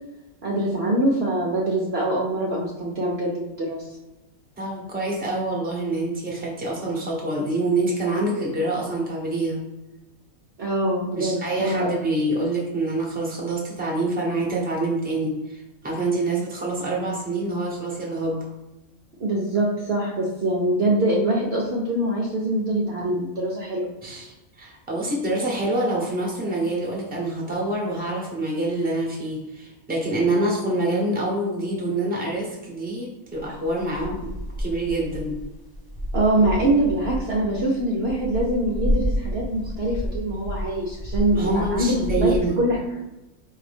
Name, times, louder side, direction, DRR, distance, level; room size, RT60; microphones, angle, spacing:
voice 1, 0.4-3.8 10.6-12.0 19.2-23.9 36.1-42.8, right 1 dB, 55° right, -3 dB, 0.8 m, -24 dB
voice 2, 4.6-9.6 11.2-18.4 24.0-34.3 34.6-35.3 41.3-42.6, right 2 dB, 5° right, -3 dB, 0.9 m, -26 dB
sound 1, 33.4-42.4, equal, 30° left, 0.4 m, -30 dB
4.9 x 2.7 x 3.4 m, 1.0 s
omnidirectional pair, 1.5 m